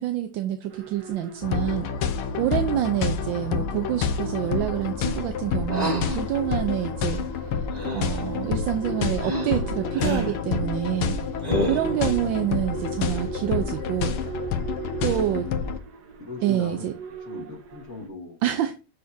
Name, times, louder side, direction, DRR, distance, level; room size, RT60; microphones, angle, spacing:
voice 1, 0.0-1.9 2.3-7.2 7.9-11.1 11.6-14.2 15.0-15.5 16.4-16.9 18.4-18.7, right 12 dB, 75° right, 7 dB, 1.2 m, -27 dB
sound 1, 0.7-18.1, right 5 dB, 55° right, 1.3 m, -40 dB
sound 2, 1.4-15.8, left 6 dB, 90° left, 1.6 m, -28 dB
sound 3, 5.7-6.2 7.7-8.2 9.2-9.6 9.9-10.4 11.4-12.0, right 1 dB, 20° right, 1.4 m, -28 dB
voice 2, 11.3-11.9 14.9-15.3 16.2-16.9 17.3-18.4, left 3 dB, 35° left, -1 dB, 1.9 m, -40 dB
6.4 x 5.7 x 2.7 m, 0.30 s
omnidirectional pair, 2.4 m